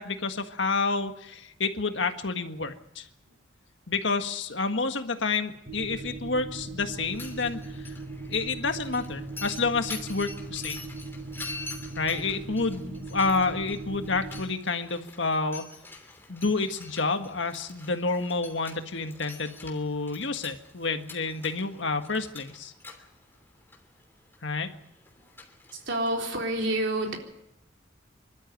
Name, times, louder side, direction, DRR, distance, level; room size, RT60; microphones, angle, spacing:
voice 1, 0.0-3.1 3.9-7.9 8.3-10.8 12.0-15.6 16.3-22.7 24.4-24.7, left 4 dB, 70° left, 7 dB, 1.6 m, -29 dB
sound 1, 5.7-14.4, right 3 dB, 35° right, 5.4 m, -39 dB
Mechanisms, 6.9-26.6, left 3 dB, 10° left, 3.0 m, -46 dB
voice 2, 25.7-27.2, right 1 dB, 70° right, 1 dB, 3.9 m, -28 dB
26.0 x 13.0 x 9.2 m, 0.85 s
head